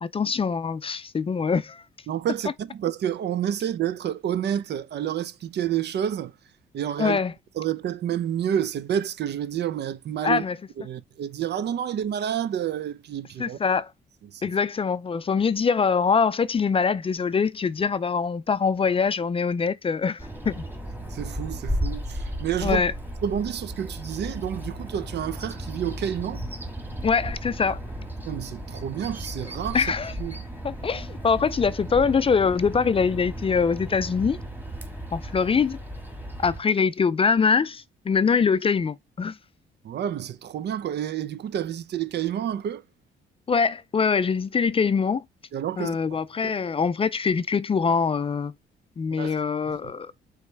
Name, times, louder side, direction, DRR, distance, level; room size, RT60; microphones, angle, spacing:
voice 1, 0.0-1.8 7.0-7.3 10.2-10.6 13.4-13.9 14.4-20.6 22.6-22.9 27.0-27.8 29.7-30.1 30.6-34.4 35.1-35.8 36.4-39.4 43.5-45.2 45.8-48.5 49.0-50.1, left 5 dB, 30° left, 0.4 m, -23 dB
voice 2, 2.1-6.3 6.7-7.2 7.6-10.4 10.8-13.6 14.3-14.4 21.1-22.8 23.2-26.4 28.3-29.8 30.2-30.4 39.8-42.8 45.5-46.0 46.4-46.5 49.2-49.4, right 10 dB, 60° right, 0.5 m, -29 dB
Bird vocalization bird call bird song, 20.2-36.6, equal, 10° right, 1.5 m, -35 dB
4.9 x 3.1 x 3.3 m
cardioid pair, 90°, 20 cm